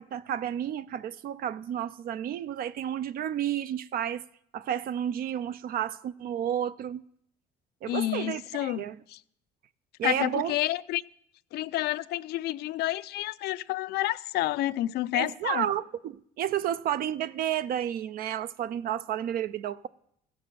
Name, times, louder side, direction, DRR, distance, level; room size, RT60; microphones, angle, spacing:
voice 1, 0.0-4.2 4.5-7.0 7.8-9.0 10.0-10.5 15.1-19.9, right 10 dB, 60° right, 0.4 m, -31 dB
voice 2, 7.9-9.2 10.0-11.0 11.5-15.7, left 16 dB, 75° left, 0.4 m, -30 dB
15.5 x 6.0 x 6.8 m
cardioid pair, 110°, 17 cm